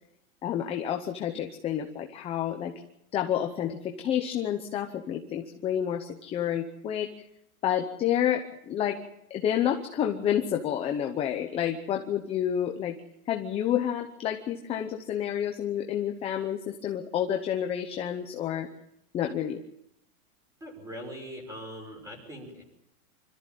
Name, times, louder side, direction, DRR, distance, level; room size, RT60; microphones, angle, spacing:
voice 1, 0.4-2.7 3.1-7.1 7.6-9.0 9.3-13.0 13.3-18.7 19.1-19.6, left 10 dB, 15° left, 4 dB, 0.8 m, -29 dB
voice 2, 20.6-22.6, equal, 5° right, 2 dB, 5.9 m, -41 dB
25.5 x 14.0 x 9.2 m, 0.80 s
supercardioid pair, 165°, 43 cm